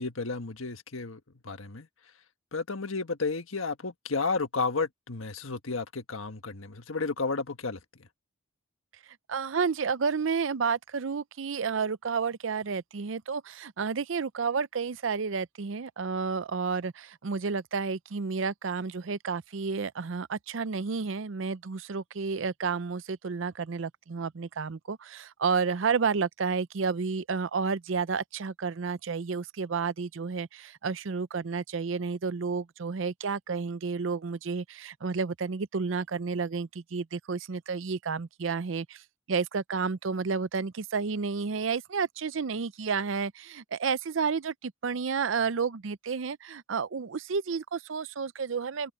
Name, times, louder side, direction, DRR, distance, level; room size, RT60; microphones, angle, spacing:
voice 1, 0.0-1.9 2.5-7.8, left 4 dB, 85° left, 1.5 m, -32 dB
voice 2, 9.3-39.0 39.3-48.9, right 5 dB, 70° right, 0.6 m, -31 dB
head